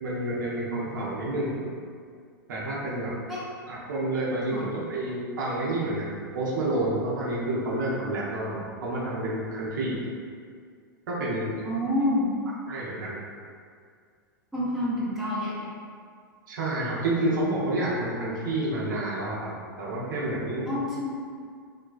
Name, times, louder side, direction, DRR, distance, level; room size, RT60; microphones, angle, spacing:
voice 1, 0.0-1.7 2.5-3.1 3.7-10.0 11.1-11.5 12.7-13.2 16.5-19.5 19.8-20.7, right 1 dB, 65° right, -5 dB, 0.6 m, -29 dB
voice 2, 11.6-12.3 14.5-15.7 20.6-21.1, left 1 dB, ahead, -10 dB, 0.7 m, -28 dB
2.5 x 2.1 x 2.3 m, 2.1 s
figure-of-eight pair, 105°, 11 cm